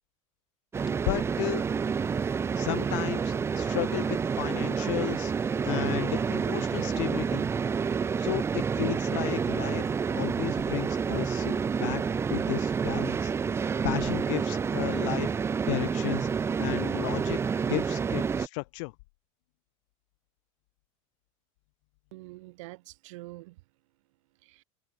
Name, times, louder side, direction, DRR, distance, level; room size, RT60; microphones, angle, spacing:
sound 1, 0.7-18.5, right 6 dB, 15° right, 0.4 m, -29 dB
voice 1, 1.0-1.6 2.6-5.3 5.6-7.5 8.2-12.0 12.3-13.3 13.6-15.3 15.7-17.4 17.7-18.9, left 28 dB, 65° left, 0.6 m, -34 dB
voice 2, 22.1-24.6, right 21 dB, 75° right, 4.6 m, -47 dB
supercardioid pair, 115°, 17 cm